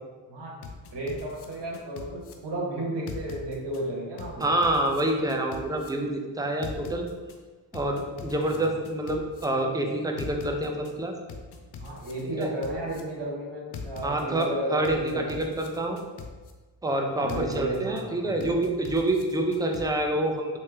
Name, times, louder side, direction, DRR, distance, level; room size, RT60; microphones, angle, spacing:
voice 1, 0.3-0.6 0.9-4.5 8.5-8.7 11.8-15.5 17.2-18.5, right 1 dB, 70° right, -3 dB, 1.2 m, -33 dB
sound 1, 0.6-2.3 3.1-3.8 4.2-5.9 6.6-7.4 7.7-9.4 10.2-10.9 11.3-13.0 13.7-14.5 14.8-16.5 17.3-18.0 18.4-19.8, left 5 dB, 65° left, 0.6 m, -41 dB
voice 2, 4.4-7.0 7.7-11.1 12.4-12.5 14.0-16.0 16.8-20.6, right 1 dB, 10° right, 2 dB, 0.5 m, -27 dB
3.2 x 2.8 x 3.3 m, 1.3 s
cardioid pair, 60°, 44 cm